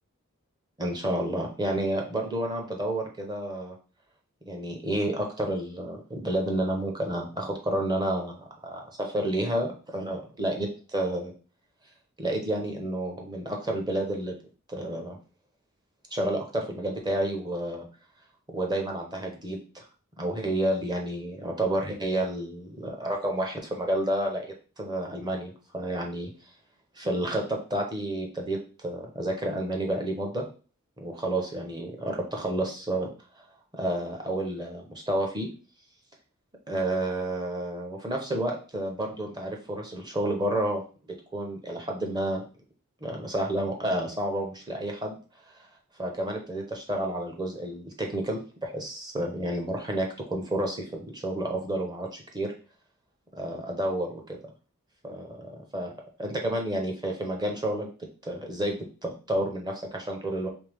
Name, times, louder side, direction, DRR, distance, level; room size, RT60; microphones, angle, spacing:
voice 1, 0.8-3.7 4.5-11.3 12.2-14.3 14.7-15.2 16.1-17.8 18.5-19.8 20.2-24.5 24.8-26.3 27.0-30.5 31.0-33.1 33.7-35.5 36.7-40.8 41.3-42.4 43.0-45.2 46.0-52.5 53.3-54.4 55.0-55.9 56.2-57.9 58.2-58.8 59.0-60.5, right 1 dB, 20° right, 2 dB, 0.8 m, -30 dB
3.4 x 3.3 x 3.4 m, 0.37 s
head